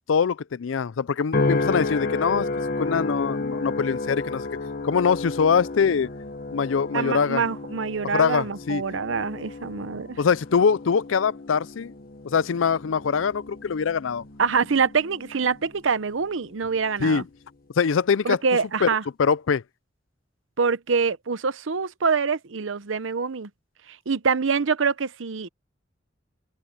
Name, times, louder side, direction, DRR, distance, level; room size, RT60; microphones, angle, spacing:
voice 1, 0.1-2.5 2.8-4.5 4.8-6.1 6.5-7.4 8.0-8.8 10.2-11.9 12.2-14.2 17.0-17.2 17.8-18.4 18.8-18.9 19.2-19.6, left 6 dB, 90° left, 0.5 m, -23 dB
sound 1, 1.3-15.8 16.3-16.8, left 3 dB, 50° left, 1.1 m, -32 dB
voice 2, 6.9-10.2 14.4-17.2 18.2-19.0 20.6-23.5 23.9-25.5, right 5 dB, 90° right, 0.8 m, -25 dB
head